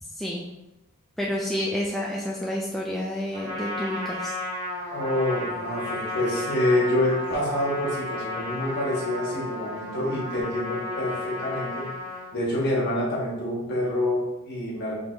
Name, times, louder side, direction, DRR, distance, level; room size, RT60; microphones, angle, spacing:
voice 1, 1.2-4.3, equal, ahead, -4 dB, 0.3 m, -29 dB
Trumpet, 3.3-12.3, left 2 dB, 30° right, 1.5 m, -34 dB
voice 2, 4.9-11.9 12.3-14.9, left 1 dB, 50° left, -4 dB, 1.4 m, -27 dB
4.7 x 3.5 x 2.7 m, 0.97 s
head